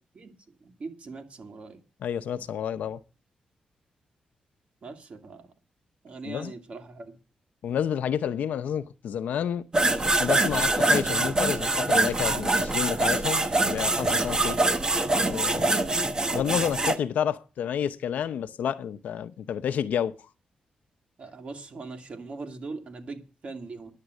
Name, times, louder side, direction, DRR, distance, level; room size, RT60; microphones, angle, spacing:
voice 1, 0.6-1.8 4.8-5.5 6.0-7.2 21.2-23.9, right 3 dB, 55° right, 2.4 m, -40 dB
voice 2, 2.0-3.0 6.2-6.5 7.6-9.7 10.2-14.6 15.3-15.8 16.3-20.1, left 9 dB, 85° left, 0.7 m, -30 dB
sound 1, 9.7-17.0, right 2 dB, 30° right, 1.1 m, -24 dB
10.5 x 7.6 x 8.1 m
cardioid pair, 90°, 3 cm